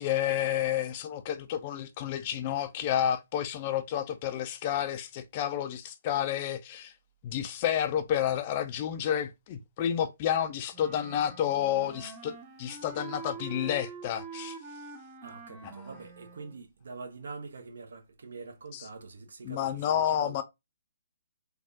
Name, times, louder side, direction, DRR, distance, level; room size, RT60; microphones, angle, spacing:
voice 1, 0.0-6.9 7.2-14.6 15.6-15.7 18.7-18.8 19.4-20.4, left 10 dB, 35° left, 0.4 m, -30 dB
Wind instrument woodwind instrument, 10.7-16.6, right 5 dB, 20° right, 0.8 m, -45 dB
voice 2, 15.2-20.4, right 4 dB, 65° right, 0.9 m, -45 dB
3.4 x 2.3 x 2.6 m
figure-of-eight pair, 135°, 0 cm